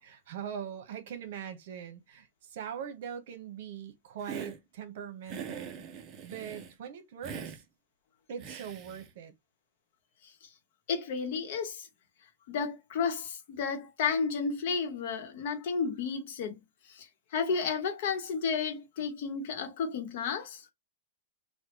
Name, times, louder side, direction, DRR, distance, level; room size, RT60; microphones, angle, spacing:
voice 1, 0.0-5.7 6.2-7.6 8.3-9.3, right 8 dB, 60° right, 1.0 m, -41 dB
Hiss, 4.2-4.6 5.3-6.7 7.2-7.6 8.4-9.1, right 7 dB, 25° right, 0.5 m, -42 dB
voice 2, 10.9-11.9 12.5-16.6 16.9-20.6, left 5 dB, 55° left, 1.0 m, -32 dB
3.2 x 2.3 x 2.9 m
supercardioid pair, 160°, 0 cm